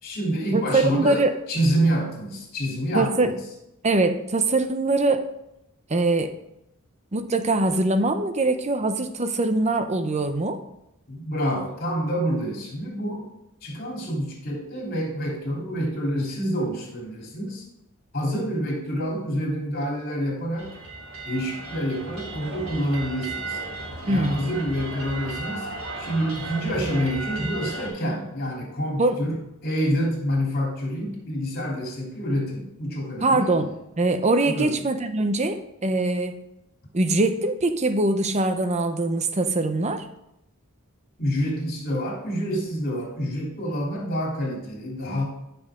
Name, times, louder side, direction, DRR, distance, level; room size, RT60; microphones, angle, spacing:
voice 1, 0.0-1.2 1.5-3.4 11.1-13.3 13.6-17.6 18.1-20.7 21.2-23.6 24.0-25.7 26.0-33.5 34.5-34.7 41.2-45.2, equal, 45° left, -2 dB, 3.4 m, -27 dB
voice 2, 0.5-1.4 2.9-3.3 3.8-5.2 5.9-6.4 7.1-10.6 24.1-24.4 29.0-29.2 33.2-33.7 34.0-36.4 36.9-40.1, right 2 dB, 30° right, 9 dB, 0.7 m, -22 dB
sound 1, 20.5-27.9, right 2 dB, 70° right, 3.5 m, -35 dB
14.0 x 6.1 x 3.7 m, 0.86 s
head